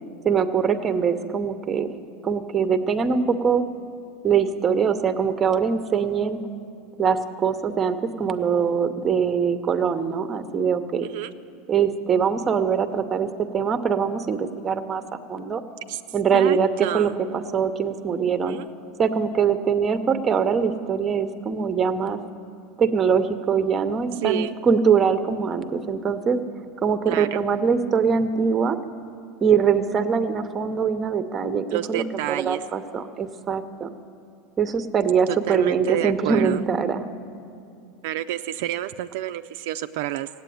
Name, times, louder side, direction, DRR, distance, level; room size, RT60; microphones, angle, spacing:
voice 1, 0.2-2.0 2.2-3.7 4.2-6.4 7.0-11.1 11.7-15.0 15.3-15.6 16.1-18.6 19.0-22.2 22.8-26.4 26.8-28.8 29.4-33.9 34.6-37.0, right 6 dB, 20° right, 9 dB, 0.8 m, -23 dB
voice 2, 16.3-17.2 18.5-18.7 24.2-24.5 27.1-27.4 31.7-32.6 35.3-36.6 38.0-40.3, right 13 dB, 70° right, 9 dB, 0.4 m, -29 dB
16.5 x 8.5 x 9.3 m, 2.5 s
supercardioid pair, 145°, 0 cm